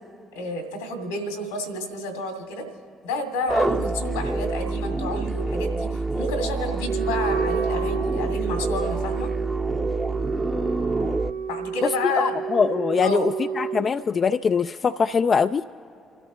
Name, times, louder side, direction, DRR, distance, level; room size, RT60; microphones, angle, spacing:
voice 1, 0.3-2.6 3.0-9.3 11.5-12.3 13.0-13.3, left 1 dB, 85° left, 3 dB, 2.2 m, -30 dB
sound 1, 3.5-11.3, right 2 dB, 10° right, 0.7 m, -27 dB
Wind instrument woodwind instrument, 6.8-13.9, right 7 dB, 70° right, 0.5 m, -30 dB
voice 2, 12.2-15.6, left 6 dB, 45° left, 10 dB, 0.3 m, -22 dB
29.0 x 13.5 x 3.1 m, 2.7 s
figure-of-eight pair, 45°, 0 cm